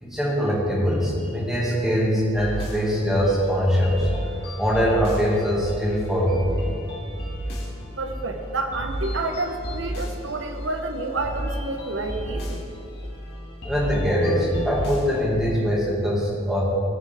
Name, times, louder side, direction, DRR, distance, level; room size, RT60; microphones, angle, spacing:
voice 1, 0.0-4.1 4.6-6.7 13.6-16.6, equal, ahead, -6 dB, 2.1 m, -22 dB
sound 1, 2.3-15.2, equal, 50° left, 2.3 m, -33 dB
voice 2, 8.0-12.6, right 2 dB, 60° right, 4 dB, 1.0 m, -29 dB
18.5 x 6.8 x 3.6 m, 2.6 s
head